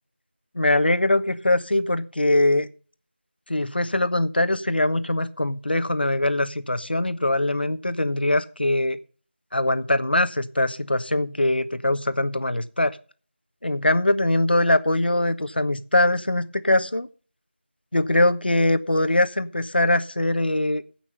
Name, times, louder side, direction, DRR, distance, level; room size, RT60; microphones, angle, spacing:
voice 1, 0.5-2.7 3.5-9.0 9.5-13.0 13.6-17.1 17.9-20.8, left 1 dB, 55° left, 12 dB, 1.2 m, -22 dB
15.5 x 6.0 x 5.6 m, 0.40 s
figure-of-eight pair, 175°, 6 cm